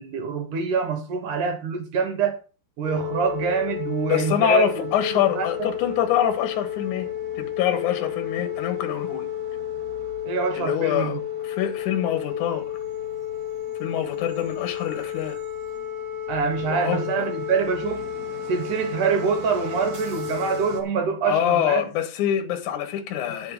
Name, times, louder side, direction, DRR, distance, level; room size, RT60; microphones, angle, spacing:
voice 1, 0.0-2.4 2.8-4.9 5.3-5.5 10.2-11.2 16.3-18.1 18.5-21.9, right 6 dB, 80° right, 1.8 m, -25 dB
sound 1, 2.8-20.8, left 9 dB, 60° right, 1.1 m, -32 dB
voice 2, 4.1-9.3 10.5-12.7 13.8-15.4 16.6-17.3 21.3-23.5, left 10 dB, 60° left, 2.1 m, -25 dB
10.5 x 4.6 x 7.3 m
omnidirectional pair, 5.5 m